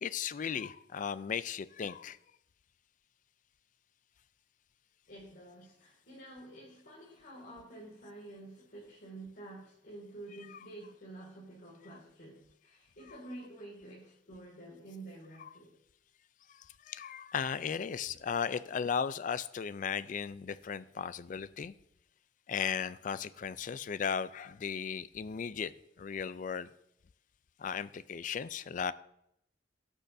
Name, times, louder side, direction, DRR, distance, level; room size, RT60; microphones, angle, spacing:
voice 1, 0.0-2.2 16.5-21.7 22.5-25.7 26.0-26.7 27.6-28.9, left 7 dB, 45° left, 16 dB, 0.4 m, -36 dB
voice 2, 5.1-15.7, right 2 dB, 60° left, -5 dB, 2.3 m, -49 dB
17.5 x 6.3 x 2.6 m, 0.77 s
head